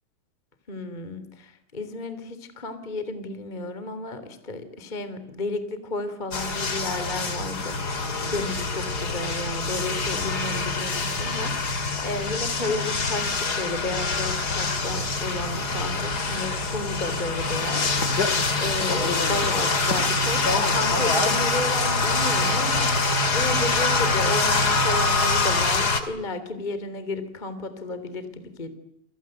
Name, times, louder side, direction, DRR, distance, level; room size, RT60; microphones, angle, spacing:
voice 1, 0.7-17.8 18.6-22.9 23.3-28.7, left 2 dB, 10° left, 11 dB, 2.4 m, -32 dB
sound 1, 6.3-26.0, left 3 dB, 30° left, 2.0 m, -25 dB
29.5 x 24.5 x 8.0 m, 0.75 s
omnidirectional pair, 5.7 m